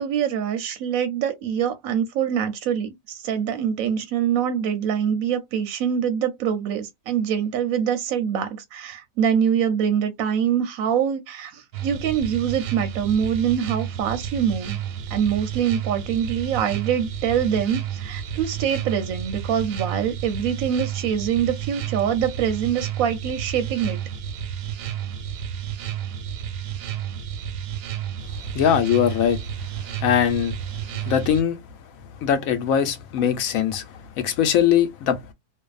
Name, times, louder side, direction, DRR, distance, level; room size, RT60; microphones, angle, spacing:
voice 1, 0.0-14.8 15.1-24.0, right 8 dB, 70° right, 0.9 m, -24 dB
sound 1, 11.7-31.4, right 9 dB, 90° right, 1.2 m, -31 dB
voice 2, 28.5-29.4 29.8-30.6 30.9-31.6 32.2-35.2, left 9 dB, 65° left, 0.9 m, -21 dB
2.6 x 2.3 x 2.3 m
omnidirectional pair, 1.7 m